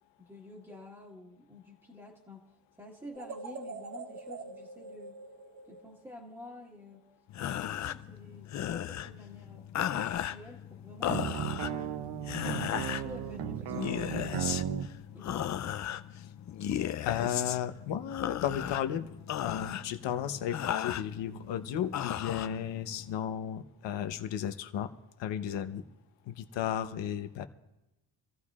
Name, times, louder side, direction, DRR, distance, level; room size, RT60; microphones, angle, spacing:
voice 1, 0.2-5.2 5.7-7.0 7.5-11.3 11.6-11.9 12.5-14.8 15.1-15.5, left 2 dB, 5° right, -6 dB, 1.6 m, -50 dB
sound 1, 3.1-6.3, right 3 dB, 35° right, 1.0 m, -44 dB
sound 2, 7.3-23.2, left 10 dB, 40° left, 0.5 m, -36 dB
sound 3, 11.1-14.9, right 11 dB, 70° right, 0.8 m, -35 dB
voice 2, 17.0-19.1 19.4-24.9 25.2-25.8 26.3-27.4, left 9 dB, 75° left, 9 dB, 1.0 m, -34 dB
26.5 x 15.0 x 2.4 m, 0.94 s
cardioid pair, 145°, 44 cm